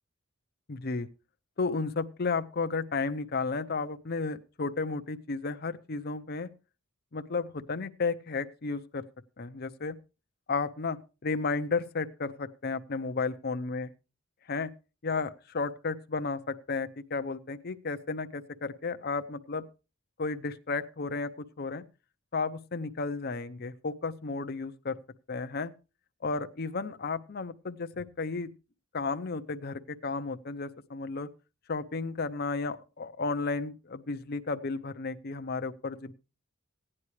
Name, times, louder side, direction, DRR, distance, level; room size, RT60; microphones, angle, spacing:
voice 1, 0.7-1.1 1.6-6.5 7.1-9.0 9.4-10.0 10.5-13.9 14.5-14.7 15.0-19.7 20.2-21.8 22.3-25.0 25.3-25.7 26.2-28.5 28.9-31.3 31.7-36.1, left 4 dB, 50° left, 10 dB, 0.7 m, -33 dB
16.0 x 9.8 x 3.2 m, 0.31 s
head